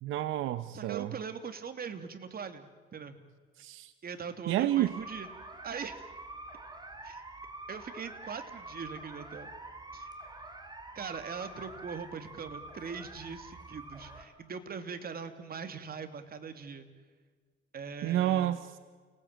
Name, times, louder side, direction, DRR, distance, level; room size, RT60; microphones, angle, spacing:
voice 1, 0.0-1.1 3.6-3.9 4.5-4.9 18.0-18.7, right 13 dB, 90° right, 13 dB, 0.9 m, -29 dB
voice 2, 0.7-2.6 2.9-3.2 4.0-5.3 5.6-6.0 7.0-7.2 7.7-9.5 9.9-10.1 10.9-16.9 17.7-18.6, right 6 dB, 50° right, 8 dB, 2.8 m, -41 dB
sound 1, 4.7-14.2, right 2 dB, 20° right, 3.9 m, -46 dB
29.5 x 19.0 x 9.1 m, 1.5 s
cardioid pair, 90°, 20 cm